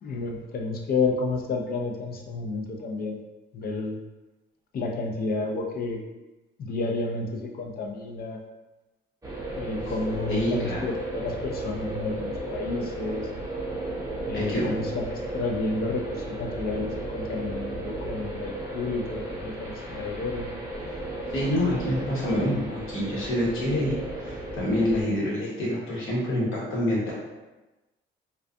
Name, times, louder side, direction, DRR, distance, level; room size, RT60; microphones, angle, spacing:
voice 1, 0.0-3.2 3.5-4.0 4.7-6.0 6.6-8.4 9.5-13.3 14.3-20.5, left 3 dB, 50° left, 2 dB, 0.5 m, -31 dB
sound 1, 9.2-25.0, right 1 dB, 15° right, 0.6 m, -34 dB
voice 2, 10.3-10.8 14.3-14.7 19.9-20.0 21.3-27.1, left 1 dB, 80° left, -6 dB, 1.0 m, -27 dB
2.3 x 2.3 x 2.5 m, 1.1 s
cardioid pair, 90°, 20 cm